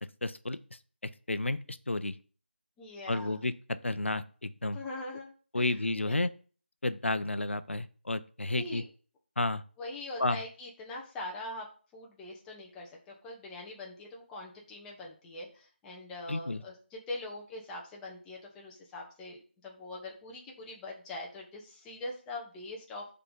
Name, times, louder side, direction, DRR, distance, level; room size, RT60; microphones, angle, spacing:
voice 1, 0.2-0.6 1.3-2.2 3.1-4.8 5.5-6.3 6.8-8.8 9.4-9.6 10.2-10.4 16.3-16.6, left 2 dB, 80° left, 13 dB, 0.7 m, -31 dB
voice 2, 2.8-3.4 4.7-5.8 6.0-6.2 8.6-8.9 9.8-11.7 11.9-23.1, left 2 dB, 5° left, -1 dB, 0.9 m, -43 dB
5.6 x 4.0 x 5.3 m, 0.40 s
figure-of-eight pair, 165°, 6 cm